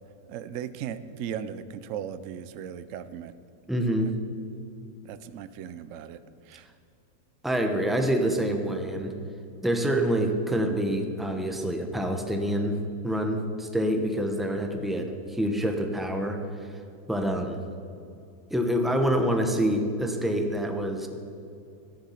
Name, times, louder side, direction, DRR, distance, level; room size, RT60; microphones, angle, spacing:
voice 1, 0.3-3.3 4.0-4.1 5.0-6.2 6.5-6.7, right 9 dB, 75° right, 13 dB, 0.7 m, -37 dB
voice 2, 3.7-4.1 7.4-9.1 9.6-12.8 13.0-16.4 17.1-17.6 18.5-21.1, equal, ahead, 4 dB, 0.4 m, -26 dB
13.5 x 10.5 x 5.7 m, 2.6 s
omnidirectional pair, 2.0 m